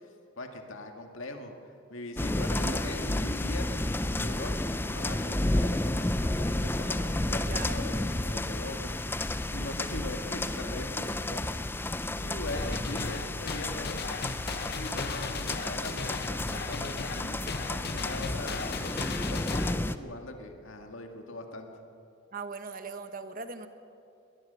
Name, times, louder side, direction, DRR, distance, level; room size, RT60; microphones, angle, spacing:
voice 1, 0.4-1.5 1.9-8.9 9.5-14.0 14.7-21.7, left 2 dB, 75° left, 4 dB, 2.1 m, -41 dB
sound 1, 2.2-19.9, left 1 dB, 10° left, 0.4 m, -31 dB
voice 2, 7.4-8.1 22.3-23.7, right 3 dB, 40° right, 9 dB, 1.3 m, -40 dB
sound 2, 12.5-19.7, left 4 dB, 50° left, 0.9 m, -37 dB
21.0 x 19.5 x 6.9 m, 2.8 s
head